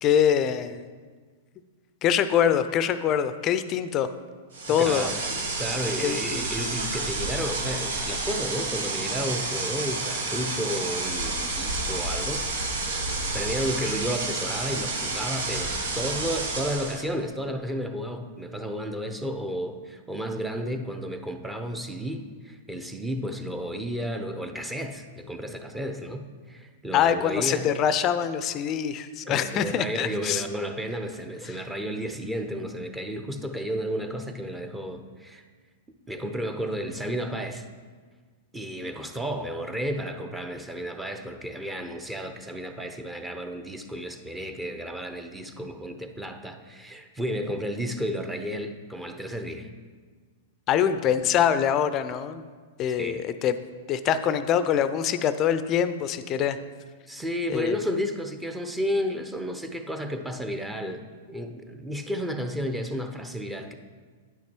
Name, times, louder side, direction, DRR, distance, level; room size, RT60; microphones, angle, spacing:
voice 1, 0.0-0.8 2.0-4.1 4.7-5.1 6.0-6.7 26.9-30.4 50.7-52.5 52.8-53.5 53.9-56.6 57.5-57.8, left 9 dB, 35° left, 12 dB, 0.5 m, -24 dB
sound 1, 4.5-17.1, right 3 dB, 80° right, 1.3 m, -30 dB
voice 2, 4.7-5.2 5.6-13.0 13.3-27.7 29.3-35.4 36.1-37.6 38.5-49.7 52.9-53.2 57.1-63.7, equal, 10° right, 5 dB, 0.8 m, -32 dB
9.7 x 5.8 x 4.5 m, 1.5 s
hypercardioid pair, 115°, 0 cm